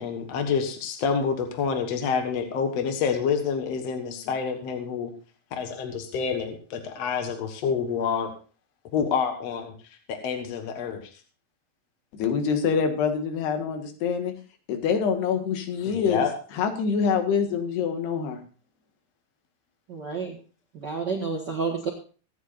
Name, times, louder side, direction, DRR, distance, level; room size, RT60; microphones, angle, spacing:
voice 1, 0.0-5.1 5.6-8.3 8.9-9.7 10.1-11.1 15.9-16.3, left 6 dB, 55° left, 5 dB, 1.9 m, -28 dB
voice 2, 12.1-14.3 14.7-16.2 16.6-18.4, left 6 dB, 85° left, 6 dB, 3.7 m, -25 dB
voice 3, 19.9-20.4 20.7-21.9, right 5 dB, 65° right, 0 dB, 1.0 m, -30 dB
24.0 x 9.3 x 2.5 m, 0.38 s
omnidirectional pair, 4.6 m